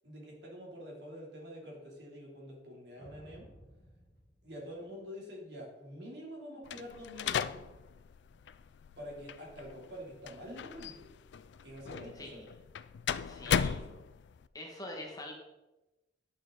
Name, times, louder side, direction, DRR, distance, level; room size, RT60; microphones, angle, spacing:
voice 1, 0.0-3.5 4.4-7.7 9.0-11.1 11.6-12.5 13.4-13.8, equal, 70° right, -2 dB, 3.2 m, -47 dB
sound 1, 3.0-5.4, equal, 45° left, 2.2 m, -58 dB
sound 2, 6.7-14.5, left 7 dB, 75° left, 0.4 m, -37 dB
voice 2, 12.2-12.5 13.2-13.8 14.5-15.3, left 1 dB, 20° left, 0 dB, 1.6 m, -44 dB
11.0 x 6.5 x 4.0 m, 1.0 s
head